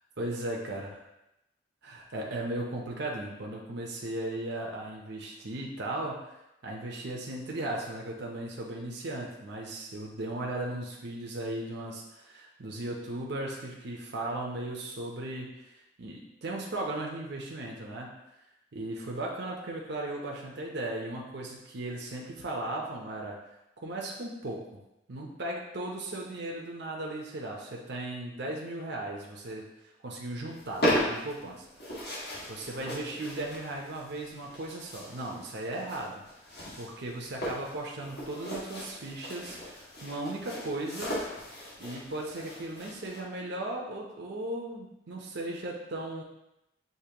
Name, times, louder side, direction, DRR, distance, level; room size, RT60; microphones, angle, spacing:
voice 1, 0.2-1.0 1.8-6.4 6.6-15.7 16.0-18.2 18.7-23.4 23.8-24.8 25.1-31.7 32.5-36.2 36.8-41.2 41.8-46.2, right 1 dB, 65° right, -1 dB, 0.7 m, -37 dB
sound 1, 30.5-43.2, equal, 55° left, 1.5 m, -37 dB
6.6 x 2.7 x 2.9 m, 0.89 s
head